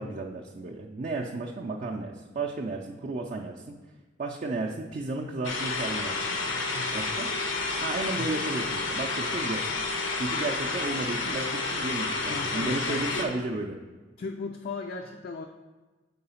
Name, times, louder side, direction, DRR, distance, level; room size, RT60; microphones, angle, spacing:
voice 1, 0.0-3.8 4.2-6.4 6.9-7.3 7.8-9.6 10.2-13.8, right 2 dB, 40° right, 0 dB, 0.4 m, -33 dB
sound 1, 5.4-13.3, left 3 dB, 85° left, 0.8 m, -30 dB
voice 2, 6.5-6.9 8.2-8.3 12.3-13.3 14.2-15.5, left 4 dB, 50° left, 3 dB, 0.4 m, -37 dB
4.7 x 3.8 x 5.5 m, 1.2 s
head